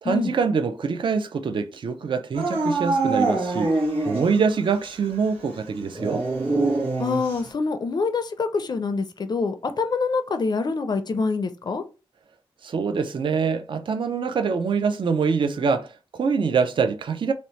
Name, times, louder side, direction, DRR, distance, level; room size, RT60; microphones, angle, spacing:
voice 1, 0.0-3.7 4.1-6.3 12.6-17.3, right 5 dB, 55° right, 0.3 m, -24 dB
Dog / Siren, 2.3-4.5 4.8-4.9 5.9-7.5, right 3 dB, 90° right, 0.9 m, -24 dB
voice 2, 7.0-11.8, left 4 dB, 45° left, 0.4 m, -25 dB
2.8 x 2.0 x 3.0 m
wide cardioid pair, 125°, 10 cm